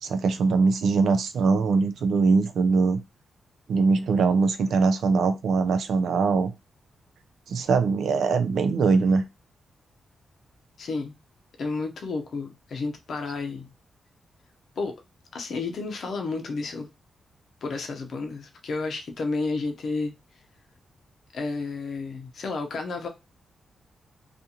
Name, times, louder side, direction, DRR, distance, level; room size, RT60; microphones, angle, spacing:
voice 1, 0.0-3.0 3.7-6.5 7.5-9.2, right 4 dB, 80° right, 0.4 m, -22 dB
voice 2, 10.8-11.1 11.6-13.7 14.8-15.0 15.3-16.9 17.6-20.1 21.3-23.1, left 3 dB, 70° left, 0.6 m, -31 dB
2.4 x 2.4 x 2.8 m
cardioid pair, 80°, 0 cm